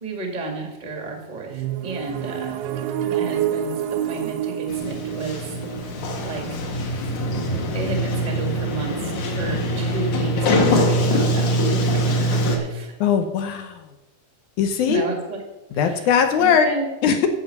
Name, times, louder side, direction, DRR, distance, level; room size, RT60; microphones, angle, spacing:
voice 1, 0.0-2.6 3.0-5.6 6.2-6.6 7.7-12.9 14.9-15.4 15.7-16.0 16.3-16.9, right 3 dB, 30° right, 2 dB, 0.8 m, -32 dB
sound 1, 1.5-7.3, right 10 dB, 80° right, 2.1 m, -28 dB
Sliding door, 4.7-12.6, equal, 60° left, 2.7 m, -23 dB
voice 2, 13.0-13.8 14.6-15.0 15.7-16.7 17.0-17.3, left 7 dB, 75° left, 7 dB, 1.8 m, -19 dB
14.5 x 5.5 x 6.7 m, 1.1 s
omnidirectional pair, 4.5 m